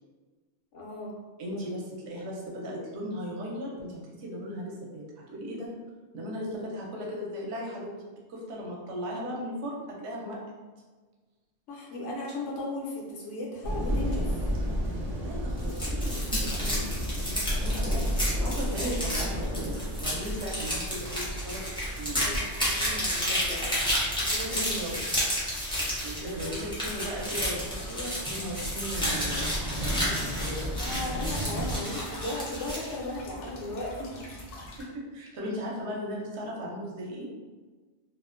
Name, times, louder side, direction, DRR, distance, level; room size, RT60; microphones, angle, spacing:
voice 1, 0.7-1.1 1.5-1.6 11.7-14.4 22.3-22.4 22.7-23.7 24.2-24.9 25.7-26.7 27.8-28.2 30.7-34.1, left 1 dB, 80° left, -3 dB, 1.0 m, -37 dB
voice 2, 1.4-5.7 6.1-7.9 8.3-10.4 15.2-18.1 18.4-22.2 24.5-25.0 25.7-29.5 29.8-30.9 34.8-37.3, equal, 70° right, -3 dB, 0.8 m, -37 dB
sound 1, 13.6-31.8, equal, 90° right, 0.3 m, -33 dB
sound 2, 15.6-33.0, equal, 5° left, 0.4 m, -32 dB
sound 3, 24.3-34.8, equal, 60° left, 0.7 m, -45 dB
2.5 x 2.1 x 2.3 m, 1.3 s
omnidirectional pair, 1.2 m